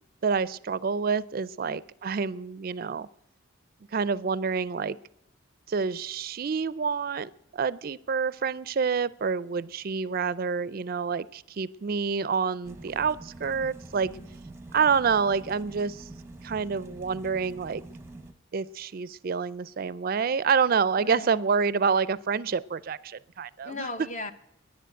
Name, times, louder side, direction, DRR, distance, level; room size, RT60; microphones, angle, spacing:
voice 1, 0.2-3.1 3.9-5.0 5.7-14.1 14.7-16.1 16.4-17.8 18.5-23.9, right 5 dB, 45° right, 19 dB, 0.4 m, -28 dB
sound 1, 12.6-18.3, right 2 dB, 10° right, 0.8 m, -45 dB
voice 2, 14.0-14.4 21.0-21.4 23.6-24.3, left 2 dB, 35° left, 10 dB, 0.8 m, -38 dB
10.5 x 10.0 x 9.1 m, 0.82 s
head